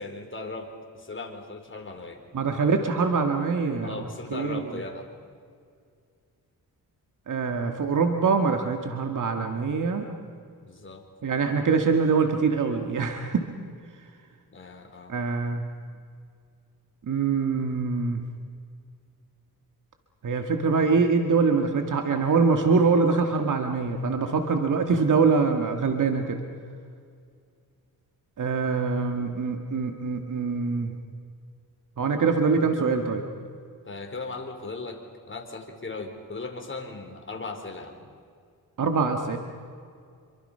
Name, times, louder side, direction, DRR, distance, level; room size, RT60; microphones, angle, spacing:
voice 1, 0.0-2.2 3.8-5.1 10.6-11.0 14.5-15.1 33.8-38.1, left 3 dB, 30° left, 3 dB, 4.3 m, -38 dB
voice 2, 2.3-3.9 4.3-4.6 7.3-10.1 11.2-13.5 15.1-15.6 17.1-18.2 20.2-26.4 28.4-31.0 32.0-33.2 38.8-39.4, right 5 dB, 55° right, 5 dB, 2.0 m, -24 dB
27.0 x 24.0 x 5.7 m, 2.2 s
cardioid pair, 80°, 37 cm